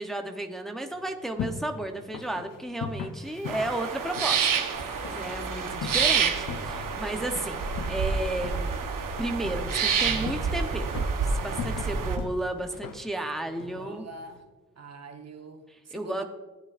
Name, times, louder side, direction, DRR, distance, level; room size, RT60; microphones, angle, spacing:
voice 1, 0.0-4.6 5.1-7.6 7.9-8.9 9.2-10.9 11.2-14.1 15.7-16.2, right 1 dB, ahead, 5 dB, 0.8 m, -33 dB
sound 1, 0.9-14.4, left 6 dB, 80° left, 0.8 m, -41 dB
sound 2, 3.2-9.5, left 1 dB, 55° left, 2.5 m, -46 dB
sound 3, 3.5-12.2, right 6 dB, 75° right, 1.0 m, -28 dB
voice 2, 5.1-6.0 13.4-14.4 14.8-16.2, right 3 dB, 50° right, 5 dB, 1.1 m, -45 dB
15.5 x 8.1 x 2.5 m, 1.3 s
cardioid pair, 55°, 33 cm